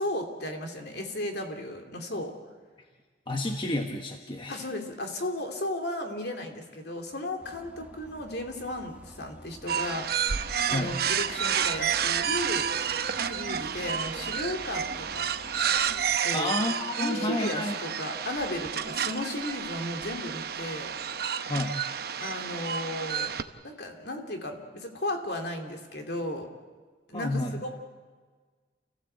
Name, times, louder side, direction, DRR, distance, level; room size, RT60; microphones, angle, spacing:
voice 1, 0.0-2.3 4.5-12.7 13.2-15.3 16.2-16.5 17.0-20.9 22.2-23.4 23.6-26.5 27.1-27.7, left 1 dB, 60° left, 3 dB, 2.9 m, -35 dB
voice 2, 3.3-4.6 10.7-10.9 16.3-17.7 21.5-21.7 27.1-27.6, left 1 dB, 25° left, 3 dB, 1.3 m, -30 dB
sound 1, 7.4-16.2, equal, 10° right, 1.2 m, -49 dB
sound 2, 9.7-23.4, right 8 dB, 55° right, 0.9 m, -30 dB
29.0 x 15.5 x 8.0 m, 1.4 s
head